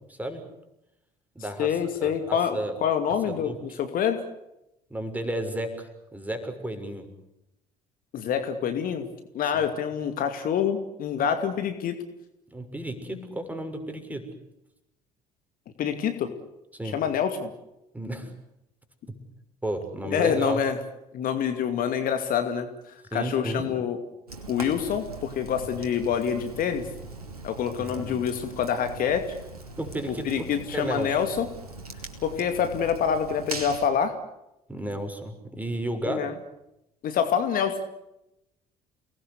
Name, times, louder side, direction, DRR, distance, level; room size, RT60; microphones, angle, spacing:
voice 1, 0.1-0.4 1.3-2.7 3.4-3.8 4.9-7.1 12.5-14.3 16.7-17.0 17.9-18.3 19.1-19.2 19.6-20.6 23.1-23.7 27.8-28.2 29.8-31.2 34.7-36.3, right 1 dB, 10° right, 6 dB, 6.6 m, -33 dB
voice 2, 1.6-4.2 8.1-9.1 9.3-12.0 15.8-16.3 16.9-17.5 20.0-20.8 21.1-24.0 24.5-26.9 27.4-29.4 30.2-31.5 32.2-34.2 36.1-36.3 37.0-37.8, left 8 dB, 50° left, 8 dB, 2.5 m, -26 dB
Fire, 24.3-33.9, right 3 dB, 85° right, 2.9 m, -41 dB
29.5 x 20.0 x 8.3 m, 0.88 s
figure-of-eight pair, 55°, 19 cm